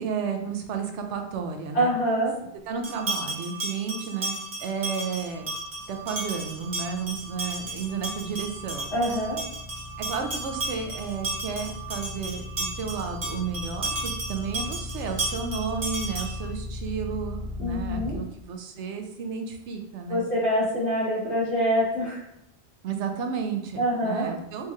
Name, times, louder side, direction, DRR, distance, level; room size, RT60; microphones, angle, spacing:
voice 1, 0.0-1.9 2.7-4.3 4.6-5.5 5.9-8.9 10.0-20.2 22.8-24.7, right 6 dB, 90° right, 4 dB, 0.9 m, -32 dB
voice 2, 1.7-2.3 8.9-9.4 17.6-18.1 20.1-22.2 23.8-24.3, equal, 70° left, -7 dB, 1.9 m, -25 dB
sound 1, 2.8-16.5, right 2 dB, 45° right, 1.1 m, -34 dB
sound 2, 4.9-18.2, left 2 dB, 50° left, 0.5 m, -38 dB
4.4 x 2.8 x 2.3 m, 0.82 s
omnidirectional pair, 1.2 m